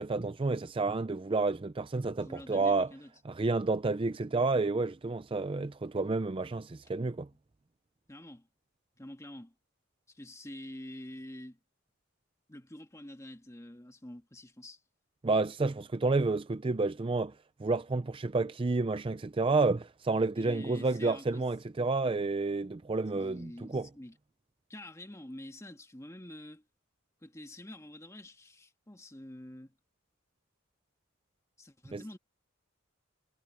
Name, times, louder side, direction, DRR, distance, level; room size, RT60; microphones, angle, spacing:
voice 1, 0.0-2.9 3.2-7.3 15.2-17.3 17.6-23.9 31.9-32.0, right 3 dB, 25° right, 0.5 m, -30 dB
voice 2, 2.2-3.1 8.1-8.5 9.0-9.5 10.1-11.6 12.5-14.8 20.3-21.5 23.1-24.2 24.7-26.6 27.2-29.8 31.6-32.2, left 1 dB, 15° left, 1.6 m, -47 dB
head